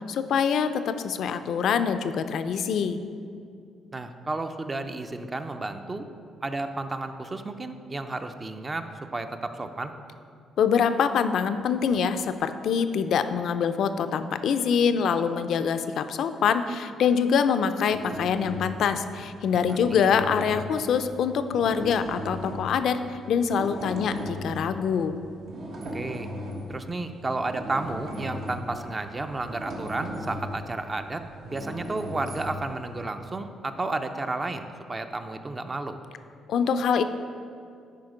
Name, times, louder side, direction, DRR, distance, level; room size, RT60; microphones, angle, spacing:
voice 1, 0.1-3.0 10.6-23.0 23.3-25.2 36.5-37.0, left 7 dB, 70° left, 10 dB, 0.4 m, -25 dB
voice 2, 3.9-6.1 6.4-8.9 9.1-9.9 19.6-20.1 25.9-26.3 26.7-31.2 31.5-36.0, right 2 dB, 25° right, 8 dB, 0.5 m, -32 dB
sound 1, 17.8-18.9 19.4-21.1 21.5-22.7 23.5-24.7 25.5-26.8 27.3-33.0, equal, 75° right, 1.4 m, -37 dB
10.5 x 4.4 x 4.9 m, 2.4 s
cardioid pair, 90°, 0 cm